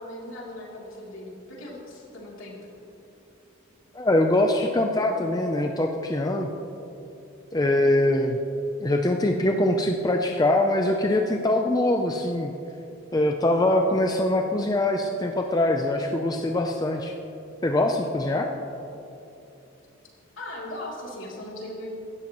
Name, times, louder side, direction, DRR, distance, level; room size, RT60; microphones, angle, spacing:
voice 1, 0.0-2.6 20.4-21.9, left 1 dB, 70° left, -4 dB, 3.1 m, -38 dB
voice 2, 3.9-6.5 7.5-8.4 8.8-12.5 13.1-17.1 17.6-18.5, left 1 dB, 20° left, 3 dB, 0.5 m, -23 dB
17.0 x 13.0 x 3.0 m, 2.9 s
head